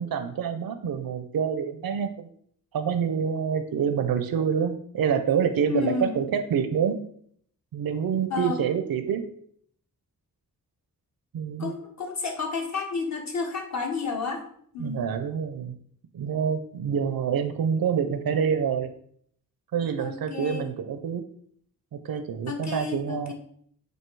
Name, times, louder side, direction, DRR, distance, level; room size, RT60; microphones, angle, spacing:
voice 1, 0.0-2.3 2.7-7.0 7.7-9.2 11.3-11.7 14.8-15.8 16.1-18.9 19.7-21.2 21.9-23.3, right 7 dB, 75° right, 9 dB, 0.6 m, -27 dB
voice 2, 5.7-6.2 8.3-8.6 11.6-14.4 14.7-15.1 20.0-20.6 22.5-23.3, left 5 dB, 50° left, 1 dB, 1.4 m, -31 dB
7.7 x 2.8 x 4.6 m, 0.63 s
wide cardioid pair, 120°, 35 cm